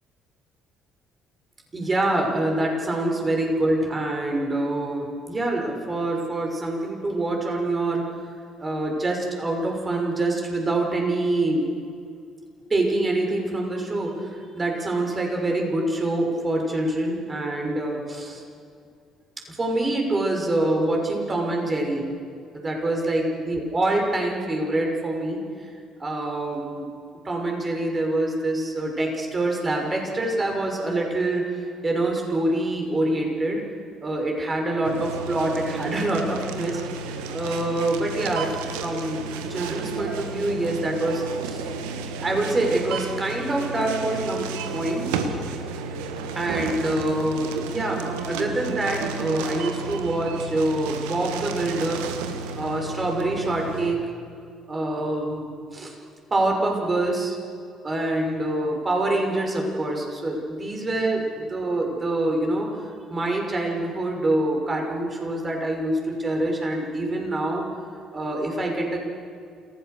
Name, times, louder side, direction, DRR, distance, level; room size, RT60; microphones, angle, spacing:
voice 1, 1.7-8.0 8.6-11.7 12.7-18.4 19.6-22.1 22.5-25.4 26.0-26.9 27.2-33.6 34.0-36.8 37.3-41.6 42.2-44.5 44.7-45.0 46.3-52.0 52.6-54.0 54.7-55.9 56.3-57.4 57.8-62.7 63.1-67.6 68.1-69.0, right 2 dB, 30° right, 1 dB, 6.4 m, -25 dB
sound 1, 34.8-53.9, right 4 dB, 75° right, 1.7 m, -32 dB
27.5 x 17.5 x 6.8 m, 2.3 s
hypercardioid pair, 50°, 0 cm